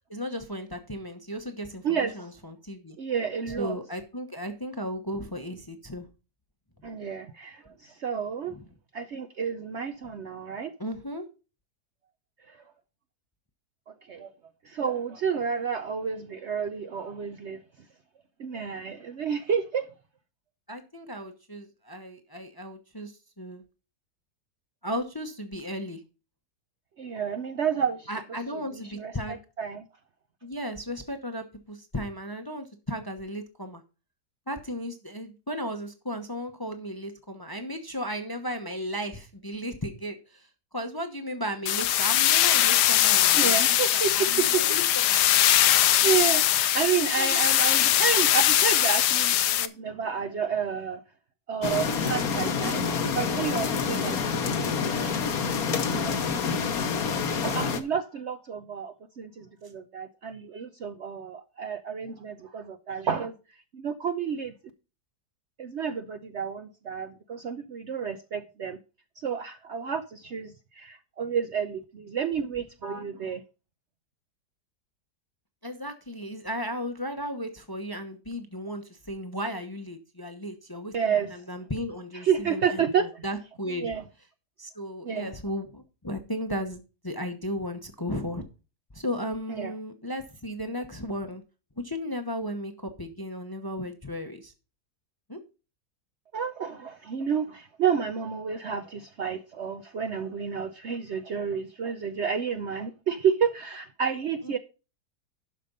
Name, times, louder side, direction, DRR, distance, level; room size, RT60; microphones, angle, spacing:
voice 1, 0.1-3.0 3.5-6.1 10.8-11.2 20.7-23.6 24.8-26.0 28.1-29.4 30.4-33.8 34.5-40.5 40.7-45.5 47.2-47.4 75.6-83.9 84.6-88.4 88.9-91.4 91.8-94.5 95.3-95.4 104.4-104.6, equal, 20° left, 0.8 m, -35 dB
voice 2, 1.8-2.3 3.0-3.7 6.8-8.6 8.9-10.7 12.5-12.6 13.9-14.3 14.6-17.6 18.4-19.9 27.0-28.1 28.7-29.9 43.4-44.1 44.4-44.8 46.0-51.0 51.5-55.7 56.0-56.4 56.7-56.9 57.2-63.3 63.7-64.5 65.6-68.8 69.2-73.4 80.9-81.3 82.2-83.2 83.8-84.0 85.0-85.3 89.5-89.7 96.3-104.6, right 7 dB, 60° right, 0.8 m, -30 dB
sound 1, 41.7-49.7, left 12 dB, 80° left, 1.3 m, -21 dB
sound 2, 51.6-57.8, left 5 dB, 65° left, 1.4 m, -27 dB
12.0 x 5.1 x 5.3 m
omnidirectional pair, 1.7 m